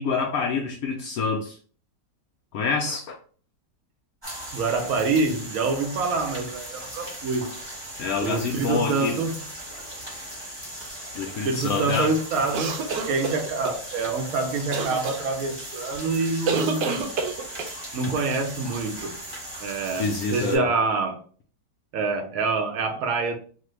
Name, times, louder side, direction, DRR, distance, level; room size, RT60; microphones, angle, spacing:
voice 1, 0.0-1.6 2.5-3.2 8.0-9.1 11.1-12.1 20.0-20.7, left 4 dB, 70° left, 0.9 m, -26 dB
sound 1, 4.2-20.6, right 1 dB, 20° right, 0.8 m, -38 dB
voice 2, 4.5-7.5 8.2-9.4 11.4-17.1 17.9-19.2 19.6-21.2 21.9-23.4, right 3 dB, 65° right, 0.9 m, -26 dB
sound 2, 12.5-13.8 14.7-15.2 16.5-17.8, right 4 dB, 85° right, 1.3 m, -27 dB
3.3 x 2.2 x 3.1 m
omnidirectional pair, 1.9 m